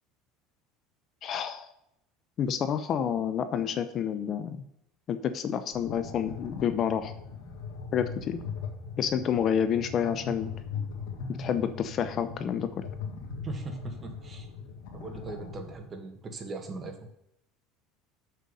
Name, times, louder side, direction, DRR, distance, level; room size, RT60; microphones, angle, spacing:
voice 1, 1.2-1.7 2.4-4.6 5.1-7.1 7.9-8.4 9.0-10.5 11.3-12.9, left 8 dB, 40° left, 11 dB, 0.6 m, -29 dB
sound 1, 5.7-15.7, left 5 dB, 85° left, 1.6 m, -40 dB
voice 2, 13.4-14.5 14.9-17.0, right 3 dB, 25° right, 5 dB, 1.4 m, -39 dB
6.8 x 6.4 x 5.4 m, 0.80 s
cardioid pair, 135°, 0 cm